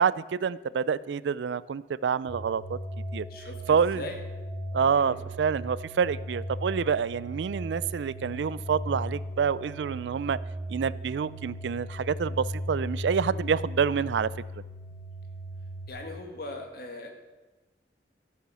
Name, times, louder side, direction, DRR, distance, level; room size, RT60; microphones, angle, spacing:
voice 1, 0.0-2.8 3.1-3.3 3.7-4.0 4.7-10.4 10.7-14.3, right 6 dB, 80° right, 19 dB, 0.4 m, -27 dB
sound 1, 2.3-15.9, equal, 20° left, 1.6 m, -37 dB
voice 2, 3.3-4.2 4.9-5.2 15.9-17.1, left 2 dB, 55° left, 3 dB, 1.9 m, -39 dB
14.0 x 7.1 x 6.2 m, 1.1 s
head